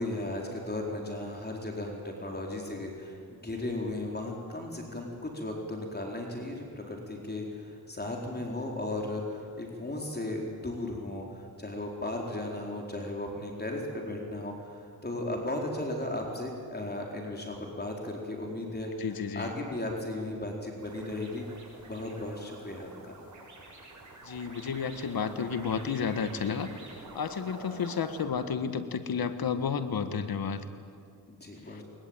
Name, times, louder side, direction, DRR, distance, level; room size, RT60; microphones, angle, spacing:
voice 1, 0.0-18.9 19.3-21.4 21.9-23.2 31.3-31.8, left 1 dB, 25° left, 0 dB, 4.3 m, -36 dB
voice 2, 19.0-19.5 24.2-26.7 27.1-30.6 31.7-31.8, left 6 dB, 65° left, 10 dB, 1.6 m, -31 dB
sound 1, 20.8-28.2, right 2 dB, 50° right, 6.9 m, -48 dB
21.0 x 20.5 x 9.1 m, 2.3 s
cardioid pair, 65°, 38 cm